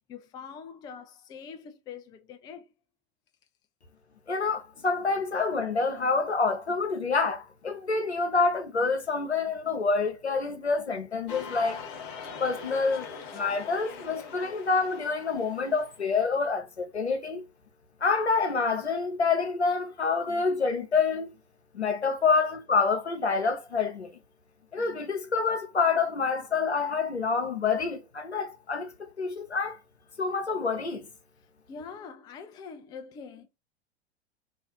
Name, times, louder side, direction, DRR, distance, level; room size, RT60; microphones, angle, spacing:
voice 1, 0.1-2.7 21.9-22.1 31.7-33.5, left 6 dB, 15° left, 0.3 m, -44 dB
voice 2, 4.3-11.8 12.4-17.4 18.0-21.3 21.7-24.2 24.7-29.8 30.2-31.1, left 4 dB, 90° left, 0.7 m, -27 dB
sound 1, 11.3-16.1, left 6 dB, 45° left, 1.0 m, -42 dB
2.5 x 2.5 x 3.8 m
figure-of-eight pair, 85°, 32 cm